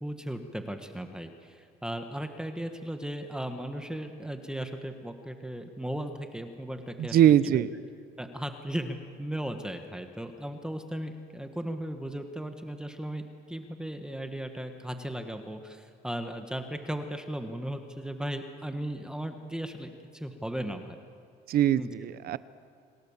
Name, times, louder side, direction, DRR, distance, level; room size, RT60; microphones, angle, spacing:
voice 1, 0.0-7.6 8.2-13.2 13.5-21.0 21.8-21.9, right 1 dB, 5° right, 6 dB, 1.6 m, -36 dB
voice 2, 7.0-7.7 21.5-22.4, right 11 dB, 65° right, 16 dB, 0.8 m, -22 dB
26.5 x 17.5 x 7.4 m, 2.2 s
cardioid pair, 110°, 17 cm